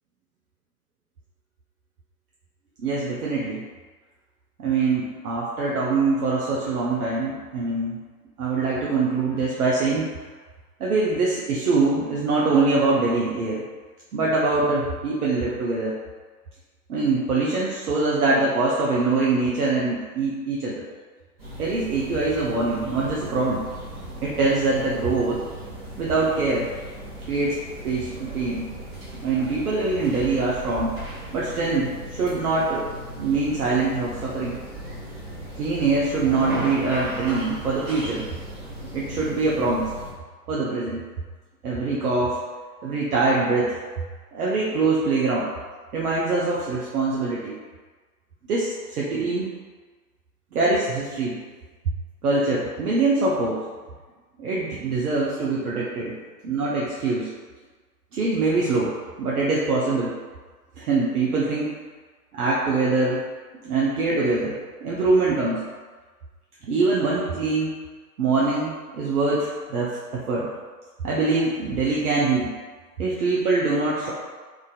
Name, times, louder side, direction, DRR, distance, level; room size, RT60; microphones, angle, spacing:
voice 1, 2.8-3.6 4.6-8.0 8.4-10.1 10.8-13.6 14.1-16.0 16.9-20.8 21.6-23.6 24.2-25.4 26.0-26.7 27.3-27.6 27.8-28.7 29.2-30.9 31.3-32.9 33.2-34.6 35.6-38.2 38.9-39.9 40.5-41.0 41.6-42.4 42.8-43.8 44.3-45.5 45.9-47.6 48.5-49.5 50.5-51.4 51.9-52.0 52.2-53.6 54.4-56.1 56.4-57.3 58.1-58.9 59.2-60.1 60.8-61.7 62.3-63.2 63.6-64.5 64.8-65.6 66.6-67.8 68.2-70.5 71.0-72.5 73.0-74.1, right 3 dB, 70° right, -5 dB, 0.6 m, -23 dB
sound 1, 21.4-40.1, right 1 dB, 25° right, 0.9 m, -37 dB
2.4 x 2.3 x 2.3 m, 1.4 s
figure-of-eight pair, 110°, 46 cm